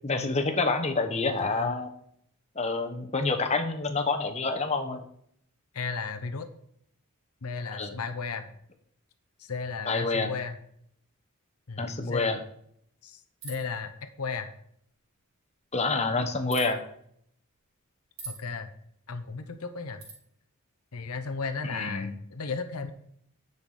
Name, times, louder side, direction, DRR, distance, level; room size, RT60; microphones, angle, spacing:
voice 1, 0.0-1.9 2.5-5.0 7.7-7.9 9.9-10.3 11.8-12.4 15.7-16.8 21.7-22.2, left 3 dB, 30° left, 7 dB, 1.0 m, -28 dB
voice 2, 1.4-1.7 5.7-6.5 7.4-8.5 9.4-10.6 11.7-12.3 13.0-13.9 14.2-14.5 18.3-18.7 19.1-20.0 20.9-22.9, left 4 dB, 85° left, 8 dB, 0.8 m, -35 dB
sound 1, 13.4-13.7 16.5-16.7 18.2-18.4 20.0-20.2, right 4 dB, 85° right, 4.2 m, -41 dB
10.5 x 6.7 x 4.2 m, 0.68 s
head